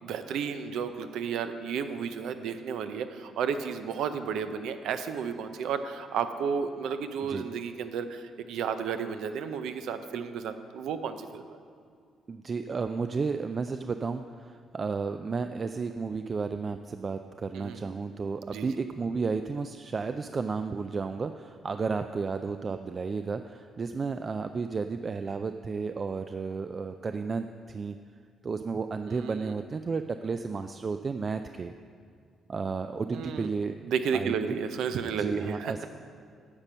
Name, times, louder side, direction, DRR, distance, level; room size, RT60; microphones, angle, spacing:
voice 1, 0.0-11.6 17.5-17.9 18.5-18.8 29.1-29.5 33.1-33.5 33.8-35.9, right 6 dB, 80° right, 9 dB, 0.6 m, -33 dB
voice 2, 12.3-28.0 28.4-31.7 32.5-33.8 34.1-34.6 35.2-35.9, right 4 dB, 40° right, 8 dB, 0.3 m, -32 dB
9.8 x 5.3 x 7.2 m, 2.2 s
cardioid pair, 90°, 0 cm